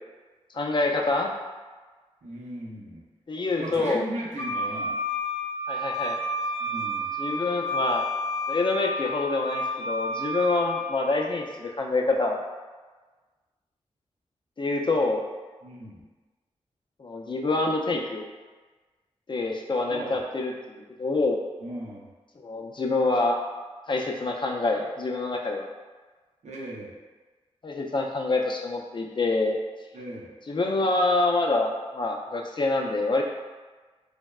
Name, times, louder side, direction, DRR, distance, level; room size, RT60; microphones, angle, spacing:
voice 1, 0.5-1.3 3.3-4.1 5.7-6.2 7.2-8.1 8.5-12.4 14.6-15.2 17.0-18.2 19.3-21.4 22.4-23.4 23.9-25.7 27.6-29.6 30.5-33.2, left 2 dB, 40° left, 1 dB, 0.4 m, -26 dB
voice 2, 2.2-3.0 3.6-4.9 6.6-7.2 15.6-16.1 19.9-20.2 21.6-22.1 26.4-27.0 29.9-30.3, right 1 dB, 75° right, -5 dB, 0.7 m, -37 dB
Wind instrument woodwind instrument, 4.4-11.1, left 1 dB, 90° left, 0.6 m, -30 dB
3.3 x 2.0 x 2.2 m, 1.3 s
cardioid pair, 50°, 12 cm